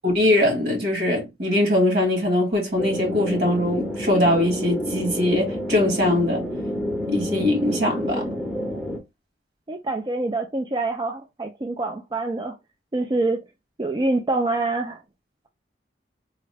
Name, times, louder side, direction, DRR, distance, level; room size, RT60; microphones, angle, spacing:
voice 1, 0.0-6.4 7.1-8.3, left 1 dB, 65° right, 1.8 m, -21 dB
sound 1, 2.8-9.0, equal, ahead, 0.7 m, -29 dB
voice 2, 9.7-12.6 12.9-13.4 13.8-15.0, right 2 dB, 25° right, 0.4 m, -26 dB
3.7 x 2.2 x 3.3 m
head